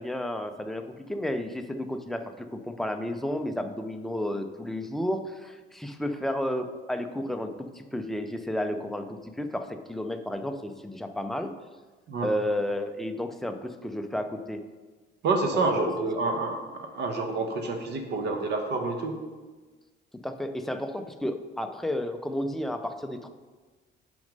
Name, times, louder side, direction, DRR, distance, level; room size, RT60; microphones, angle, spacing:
voice 1, 0.0-11.5 12.2-14.6 15.5-15.9 20.2-23.3, left 1 dB, ahead, 6 dB, 0.3 m, -32 dB
voice 2, 15.2-19.2, right 3 dB, 60° right, 5 dB, 1.0 m, -28 dB
6.3 x 5.2 x 5.1 m, 1.3 s
cardioid pair, 170°, 20 cm